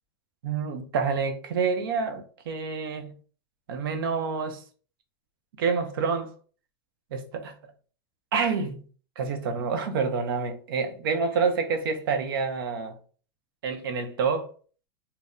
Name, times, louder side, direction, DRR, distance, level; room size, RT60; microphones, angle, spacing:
voice 1, 0.4-3.2 3.7-4.6 5.6-6.3 7.1-7.5 8.3-8.8 9.2-13.0 13.6-14.5, right 5 dB, 70° right, 0.7 m, -28 dB
4.0 x 2.0 x 2.6 m
supercardioid pair, 180°, 12 cm